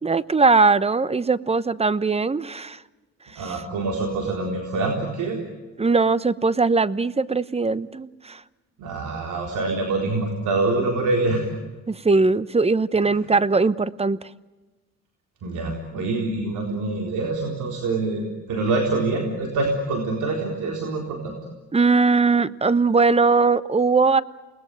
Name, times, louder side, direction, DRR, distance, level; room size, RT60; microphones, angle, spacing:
voice 1, 0.0-2.8 3.3-3.6 5.8-8.4 11.9-14.2 21.7-24.2, right 4 dB, 20° right, 17 dB, 1.0 m, -20 dB
voice 2, 3.4-5.5 8.8-11.4 15.4-21.4, right 3 dB, 80° right, 2 dB, 4.1 m, -25 dB
29.5 x 20.0 x 9.2 m, 1.2 s
cardioid pair, 90°, 30 cm